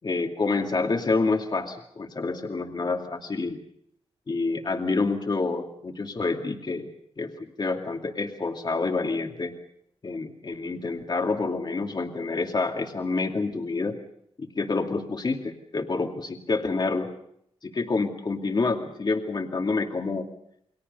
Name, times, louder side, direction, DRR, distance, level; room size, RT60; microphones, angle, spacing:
voice 1, 0.0-3.6 4.3-6.9 7.2-9.5 10.0-14.0 14.4-17.1 17.6-20.3, left 3 dB, 45° left, 3 dB, 2.4 m, -28 dB
29.5 x 22.5 x 5.5 m, 0.73 s
wide cardioid pair, 100°, 11 cm